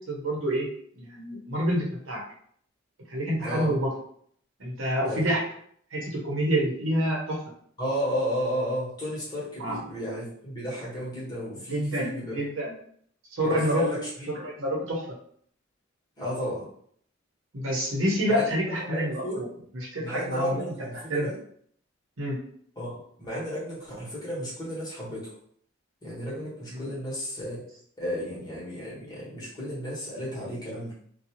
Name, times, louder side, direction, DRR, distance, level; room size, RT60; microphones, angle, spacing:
voice 1, 0.1-0.7 1.0-2.2 3.1-3.9 4.6-5.4 5.9-7.4 9.6-9.8 11.7-12.7 13.3-13.9 14.3-15.0 17.5-19.5 19.9-20.6 21.1-21.3 22.2-22.4 26.7-26.8, equal, 85° right, -3 dB, 0.9 m, -27 dB
voice 2, 3.4-3.7 5.0-5.3 7.8-12.4 13.4-14.3 16.2-16.7 18.3-18.4 18.7-19.4 20.0-21.3 22.8-25.4 26.0-27.6 28.0-30.9, equal, 20° left, -7 dB, 1.2 m, -33 dB
2.6 x 2.3 x 2.8 m, 0.62 s
head